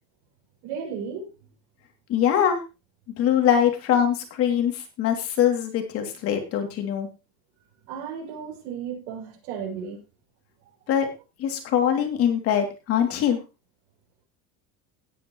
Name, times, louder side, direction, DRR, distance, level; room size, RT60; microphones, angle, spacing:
voice 1, 0.6-1.3 7.9-10.0, right 7 dB, 85° right, 6.8 m, -34 dB
voice 2, 2.1-2.6 3.2-7.1 10.9-11.1 11.4-13.4, left 9 dB, 45° left, 2.9 m, -23 dB
17.5 x 9.3 x 3.2 m
cardioid pair, 170°, 32 cm